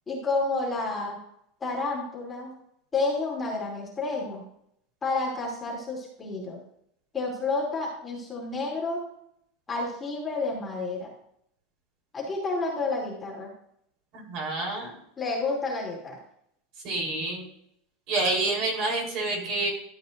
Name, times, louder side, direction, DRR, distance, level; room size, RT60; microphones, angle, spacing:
voice 1, 0.1-1.2 1.6-2.5 2.9-4.4 5.0-6.6 7.1-9.0 9.7-11.1 12.1-13.5 15.2-16.2, left 3 dB, 15° left, -4 dB, 2.8 m, -30 dB
voice 2, 14.1-15.0 16.8-17.4 18.1-19.7, right 2 dB, 50° right, -1 dB, 3.8 m, -28 dB
13.0 x 8.1 x 2.6 m, 0.73 s
supercardioid pair, 160°, 0 cm